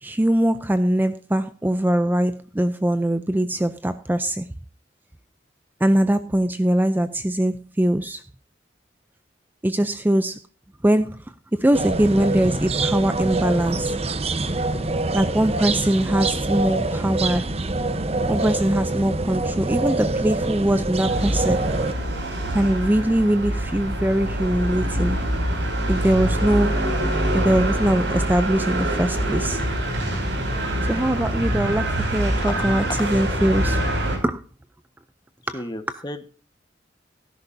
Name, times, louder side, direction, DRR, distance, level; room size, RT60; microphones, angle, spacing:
voice 1, 0.0-4.5 5.8-8.3 9.6-10.4 10.8-11.3 11.5-14.0 15.1-17.5 18.3-21.7 22.5-25.2 25.9-26.8 27.3-29.6 30.9-34.0 34.2-34.4 35.5-35.6 35.9-36.0, right 1 dB, 10° right, 0.4 m, -22 dB
sound 1, 11.7-21.9, right 2 dB, 35° right, 0.9 m, -25 dB
sound 2, 21.1-34.2, right 1 dB, 85° right, 5.9 m, -25 dB
voice 2, 32.5-33.0 35.5-36.3, left 2 dB, 25° left, 1.3 m, -33 dB
17.0 x 10.5 x 2.7 m
head